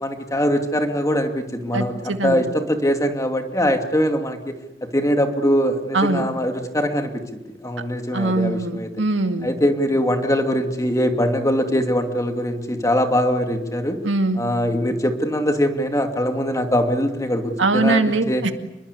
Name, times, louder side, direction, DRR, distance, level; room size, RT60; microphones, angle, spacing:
voice 1, 0.0-8.9 9.4-14.0 14.3-18.5, equal, 15° left, 5 dB, 2.6 m, -22 dB
voice 2, 1.7-2.5 5.9-6.3 8.1-9.5 14.0-14.4 17.6-18.5, right 2 dB, 75° right, 7 dB, 2.2 m, -21 dB
28.5 x 22.0 x 8.5 m, 0.91 s
head